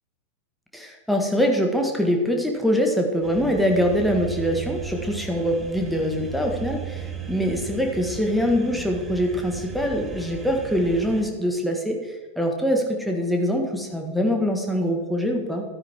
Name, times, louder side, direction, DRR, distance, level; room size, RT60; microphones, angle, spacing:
voice 1, 0.7-15.6, equal, ahead, 1 dB, 1.7 m, -24 dB
sound 1, 3.2-11.2, right 6 dB, 20° right, 1.5 m, -36 dB
13.0 x 9.6 x 3.7 m, 1.4 s
figure-of-eight pair, 90°, 0 cm